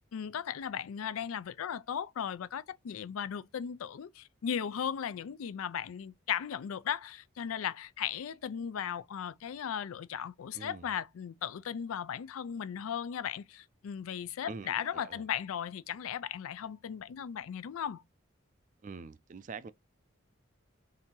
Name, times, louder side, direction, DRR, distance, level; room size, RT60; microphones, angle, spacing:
voice 1, 0.1-18.0, left 8 dB, 90° left, 0.4 m, -37 dB
voice 2, 10.5-10.9 14.4-15.2 18.8-19.7, right 4 dB, 40° right, 0.3 m, -45 dB
4.3 x 2.7 x 3.6 m
head